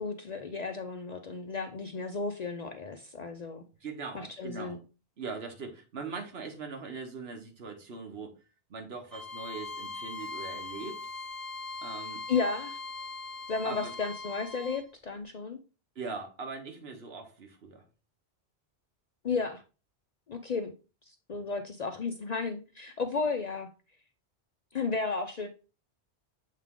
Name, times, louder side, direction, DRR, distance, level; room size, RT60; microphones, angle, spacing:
voice 1, 0.0-3.6 4.1-4.8 12.3-12.8 13.5-15.6 19.2-19.6 20.3-20.7 21.1-23.7 24.7-25.5, left 4 dB, 50° left, 6 dB, 0.5 m, -33 dB
voice 2, 3.8-4.8 5.2-8.3 8.7-11.0 11.8-12.2 13.6-13.9 15.9-17.8, right 4 dB, 65° right, 4 dB, 1.4 m, -41 dB
Bowed string instrument, 9.1-14.9, left 3 dB, ahead, 0.9 m, -40 dB
7.3 x 3.6 x 3.6 m, 0.34 s
omnidirectional pair, 1.1 m